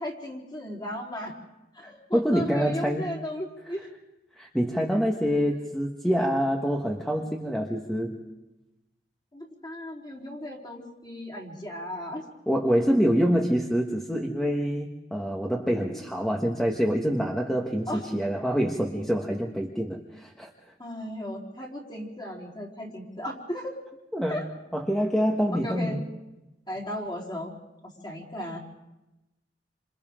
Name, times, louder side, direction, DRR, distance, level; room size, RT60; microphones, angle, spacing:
voice 1, 0.0-1.3 1.7-3.9 9.3-12.2 17.9-18.0 20.8-23.7 24.3-24.5 25.5-26.0 26.7-27.6 27.8-28.6, left 1 dB, 25° left, -2 dB, 3.9 m, -36 dB
voice 2, 1.8-3.1 4.4-8.2 12.5-20.5 24.1-24.5 24.7-26.0, equal, 5° left, 0 dB, 1.5 m, -26 dB
29.0 x 27.0 x 3.8 m, 0.99 s
head